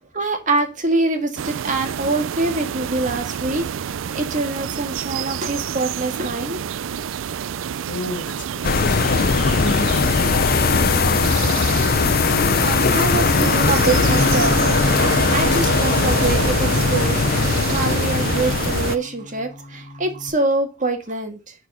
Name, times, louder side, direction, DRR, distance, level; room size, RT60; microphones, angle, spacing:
voice 1, 0.1-6.6 11.9-21.5, right 2 dB, 40° right, 1.9 m, -25 dB
sound 1, 1.4-19.0, right 8 dB, 80° right, 0.4 m, -28 dB
voice 2, 7.9-11.0, left 2 dB, 65° left, 1.2 m, -32 dB
sound 2, 8.6-19.0, left 5 dB, 50° left, 0.6 m, -19 dB
Bass guitar, 14.0-20.3, equal, 25° left, 3.0 m, -31 dB
11.0 x 4.3 x 5.4 m
head